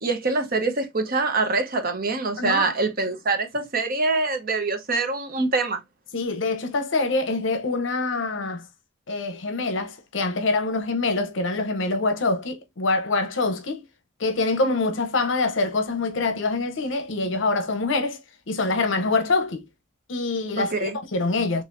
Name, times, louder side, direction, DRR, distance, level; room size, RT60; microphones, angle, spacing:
voice 1, 0.0-5.8 20.6-21.0, right 3 dB, 45° right, 0.8 m, -24 dB
voice 2, 2.4-2.7 6.1-8.6 9.1-13.8 14.2-18.2 18.5-19.6 20.1-21.6, left 3 dB, 65° left, 0.7 m, -25 dB
4.1 x 3.1 x 2.5 m
head